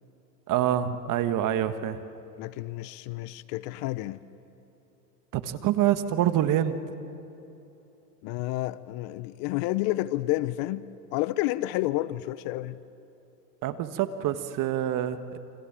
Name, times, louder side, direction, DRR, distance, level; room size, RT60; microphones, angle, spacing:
voice 1, 0.5-2.0 5.3-6.8 13.6-15.4, right 11 dB, 40° right, 1.6 m, -26 dB
voice 2, 2.4-4.2 8.2-12.8, left 17 dB, 50° left, 0.9 m, -30 dB
29.0 x 26.0 x 7.5 m
hypercardioid pair, 105°, 48 cm